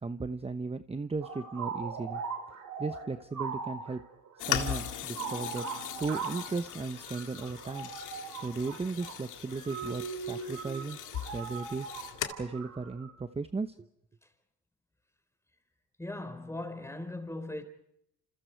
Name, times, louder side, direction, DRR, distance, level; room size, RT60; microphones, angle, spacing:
voice 1, 0.0-2.2 2.8-4.0 4.4-5.7 6.0-11.0 11.3-11.9 12.4-13.9, right 4 dB, 20° right, 1.0 m, -36 dB
sound 1, 1.2-13.1, right 5 dB, 80° right, 6.0 m, -40 dB
sound 2, 4.4-12.2, left 11 dB, 85° left, 2.3 m, -39 dB
voice 2, 16.0-17.6, left 2 dB, 10° left, 4.1 m, -39 dB
28.0 x 28.0 x 4.7 m
cardioid pair, 90°, 30 cm